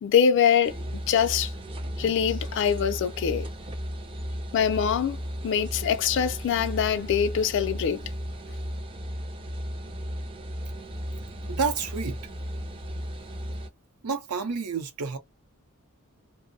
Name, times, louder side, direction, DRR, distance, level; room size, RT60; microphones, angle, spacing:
voice 1, 0.0-0.8 1.1-1.5 2.0-3.5 4.5-5.2 5.4-8.0, left 7 dB, 55° left, 0.3 m, -23 dB
sound 1, 0.6-13.7, equal, 25° right, 0.4 m, -35 dB
voice 2, 11.5-12.2 14.0-15.2, right 5 dB, 80° right, 0.6 m, -29 dB
2.4 x 2.0 x 2.5 m
head